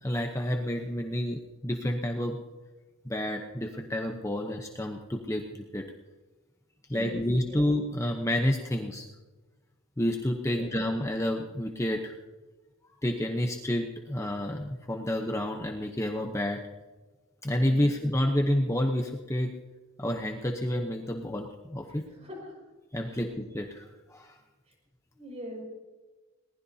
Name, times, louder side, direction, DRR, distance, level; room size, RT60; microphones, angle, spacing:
voice 1, 0.0-2.4 3.0-5.9 6.9-9.1 10.0-12.1 13.0-16.7 17.4-19.5 20.0-22.0 22.9-23.8 24.1-24.4, left 1 dB, 15° left, 3 dB, 0.9 m, -29 dB
voice 2, 6.9-7.6 10.4-10.7 21.9-22.6 23.1-23.3 24.7-24.8 25.1-25.6, equal, 30° right, 0 dB, 6.1 m, -43 dB
22.0 x 19.5 x 2.8 m, 1.2 s
head